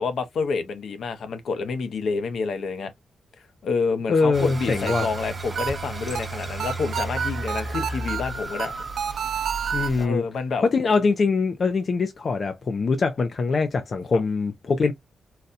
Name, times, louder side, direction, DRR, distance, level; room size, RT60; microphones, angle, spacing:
voice 1, 0.0-2.9 3.6-8.7 10.0-10.6, left 4 dB, 65° left, 0.7 m, -28 dB
voice 2, 4.1-5.1 9.7-10.2 10.6-14.9, left 4 dB, 40° left, 0.4 m, -23 dB
sound 1, 4.3-10.1, right 2 dB, 20° right, 0.9 m, -34 dB
sound 2, 4.5-9.9, right 7 dB, 65° right, 0.5 m, -30 dB
4.0 x 2.2 x 2.5 m
wide cardioid pair, 170°, 0 cm